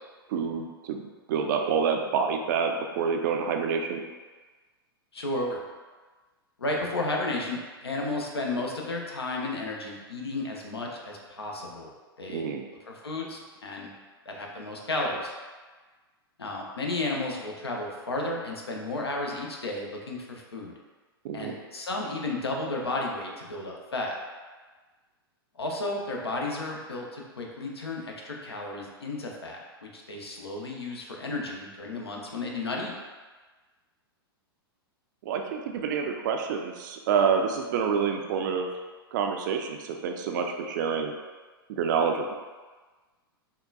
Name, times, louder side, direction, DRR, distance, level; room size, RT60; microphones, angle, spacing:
voice 1, 0.3-1.0 1.3-4.0 12.3-12.6 21.2-21.6 35.3-38.7 39.1-41.1 41.7-42.3, right 6 dB, 50° right, 4 dB, 0.4 m, -27 dB
voice 2, 5.1-5.6 6.6-11.9 12.2-12.4 12.9-13.9 14.3-15.3 16.4-20.7 21.3-24.2 25.6-32.9, left 2 dB, 80° left, 0 dB, 0.6 m, -33 dB
3.7 x 2.2 x 2.3 m, 1.3 s
figure-of-eight pair, 100°, 13 cm